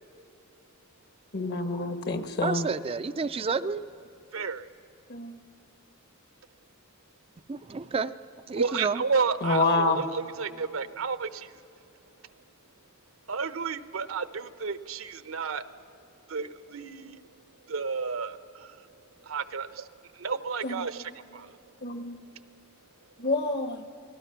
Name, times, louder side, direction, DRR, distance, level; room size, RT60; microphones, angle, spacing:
voice 1, 1.3-2.7 5.1-5.4 9.4-10.0 20.6-20.9 21.8-22.2 23.2-23.8, left 3 dB, 50° left, 7 dB, 1.4 m, -28 dB
voice 2, 2.4-3.8 7.5-8.1 8.5-9.0, right 4 dB, 30° right, 9 dB, 0.4 m, -30 dB
voice 3, 4.3-4.6 8.6-11.6 13.3-15.6 16.3-17.2 17.7-18.9 19.2-21.8, right 5 dB, 80° right, 12 dB, 0.9 m, -32 dB
28.0 x 19.5 x 5.8 m, 2.7 s
head